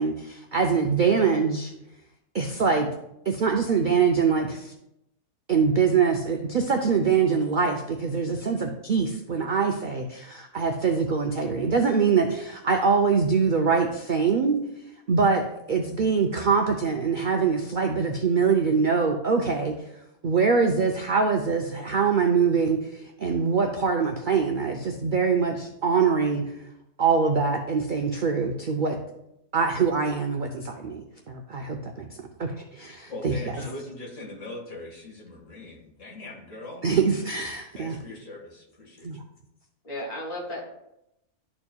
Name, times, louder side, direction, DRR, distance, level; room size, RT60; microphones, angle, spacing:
voice 1, 0.0-1.7 2.3-2.9 3.3-4.7 5.5-14.6 15.1-15.4 15.7-19.7 20.2-26.4 27.0-29.0 29.5-32.1 32.4-33.3 36.8-38.0 39.0-39.2, right 5 dB, 65° right, 3 dB, 0.5 m, -24 dB
voice 2, 33.1-36.8 37.7-39.2, left 2 dB, 55° left, -2 dB, 2.1 m, -41 dB
voice 3, 39.8-40.6, left 1 dB, 70° left, -3 dB, 2.6 m, -34 dB
12.0 x 4.4 x 2.3 m, 0.83 s
omnidirectional pair, 1.6 m